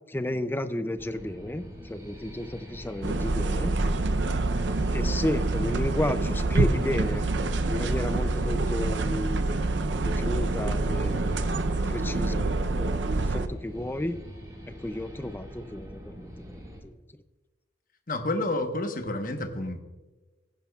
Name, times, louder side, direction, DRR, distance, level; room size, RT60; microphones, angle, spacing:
voice 1, 0.1-3.7 4.9-7.3 7.7-9.9 10.2-11.2 11.9-14.2 14.7-16.3 16.8-16.9, left 1 dB, 10° left, 11 dB, 0.4 m, -32 dB
sound 1, 1.0-16.8, equal, 20° right, 1.9 m, -44 dB
sound 2, 3.0-13.5, right 2 dB, 75° right, 0.6 m, -26 dB
voice 2, 18.1-19.8, left 2 dB, 45° left, 5 dB, 1.1 m, -29 dB
16.0 x 10.5 x 2.3 m, 1.2 s
head